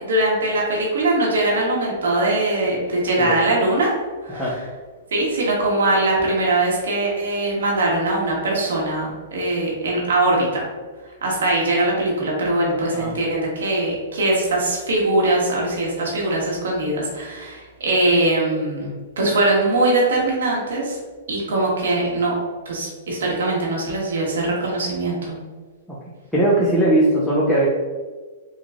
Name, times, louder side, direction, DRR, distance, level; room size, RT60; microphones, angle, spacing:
voice 1, 0.0-3.9 4.2-4.6 5.1-10.6 11.2-21.0 21.3-22.3 22.7-25.4, right 2 dB, 85° right, -3 dB, 1.3 m, -21 dB
voice 2, 26.3-27.7, right 1 dB, 5° left, -7 dB, 0.6 m, -19 dB
3.7 x 2.3 x 3.5 m, 1.4 s
hypercardioid pair, 145°, 0 cm